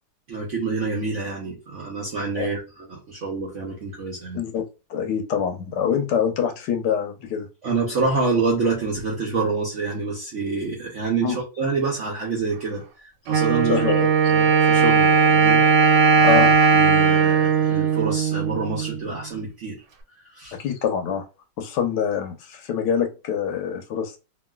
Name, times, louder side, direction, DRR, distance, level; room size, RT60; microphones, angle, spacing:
voice 1, 0.3-4.4 7.6-13.9 14.3-15.6 16.1-16.5 16.7-19.8 20.2-20.6, right 4 dB, 50° right, 1.0 m, -27 dB
voice 2, 4.3-7.5 11.2-11.4 13.7-14.1 16.2-16.5 20.5-21.2 21.6-24.2, left 7 dB, 75° left, 1.3 m, -25 dB
Wind instrument woodwind instrument, 13.3-19.0, right 5 dB, 90° right, 1.5 m, -18 dB
3.0 x 2.9 x 2.2 m
omnidirectional pair, 1.9 m